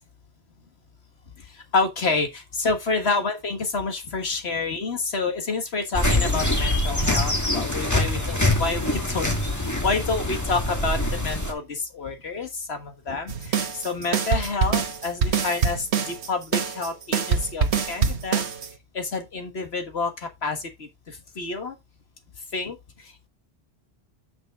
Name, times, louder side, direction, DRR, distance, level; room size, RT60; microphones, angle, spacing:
voice 1, 1.4-18.4 18.9-21.8 22.5-23.3, left 3 dB, 80° left, 1.8 m, -29 dB
sound 1, 5.9-11.5, left 1 dB, 15° left, 1.7 m, -24 dB
sound 2, 13.3-18.7, right 6 dB, 85° right, 1.3 m, -24 dB
8.4 x 6.0 x 3.6 m
omnidirectional pair, 1.1 m